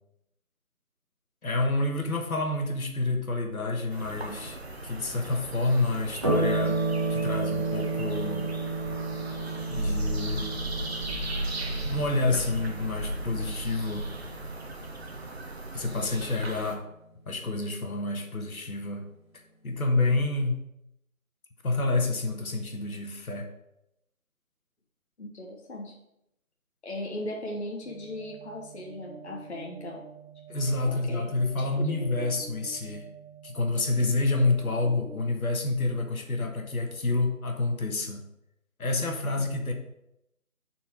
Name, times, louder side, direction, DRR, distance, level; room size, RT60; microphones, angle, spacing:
voice 1, 1.4-6.8 7.1-8.5 9.7-10.5 11.8-14.1 15.7-16.8 17.3-19.0 19.6-20.7 21.6-23.5 30.5-33.1 33.4-38.2 38.8-39.7, left 2 dB, 75° left, 3 dB, 1.5 m, -28 dB
sound 1, 3.9-16.8, right 1 dB, 45° right, 0.9 m, -36 dB
sound 2, 6.2-15.1, right 3 dB, 20° right, 1.1 m, -32 dB
voice 2, 25.2-26.0 26.8-30.0 30.9-31.2 31.6-32.3, left 1 dB, 50° left, -1 dB, 1.1 m, -38 dB
sound 3, 27.8-35.3, right 6 dB, 15° left, 1.0 m, -47 dB
7.3 x 4.5 x 4.9 m, 0.83 s
figure-of-eight pair, 170°, 43 cm